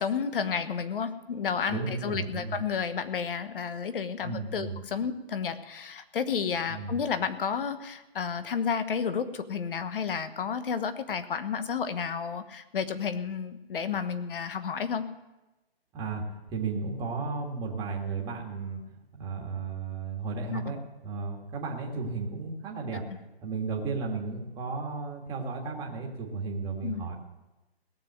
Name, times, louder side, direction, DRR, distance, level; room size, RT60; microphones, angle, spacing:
voice 1, 0.0-15.1 20.5-20.6 26.8-27.0, left 6 dB, 60° left, 11 dB, 1.2 m, -31 dB
voice 2, 1.7-2.6 4.2-4.8 6.7-7.0 15.9-18.8 19.1-23.0 23.4-27.1, right 4 dB, 15° right, -1 dB, 1.7 m, -34 dB
17.5 x 7.3 x 8.0 m, 1.0 s
hypercardioid pair, 160°, 31 cm